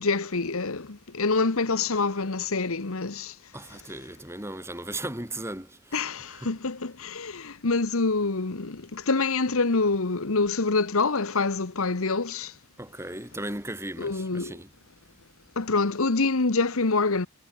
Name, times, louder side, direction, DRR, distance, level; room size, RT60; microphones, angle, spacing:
voice 1, 0.0-3.3 5.9-12.5 14.0-14.5 15.6-17.3, left 3 dB, 70° left, 1.2 m, -26 dB
voice 2, 3.5-6.5 12.8-14.7, right 1 dB, 10° right, 6.9 m, -37 dB
head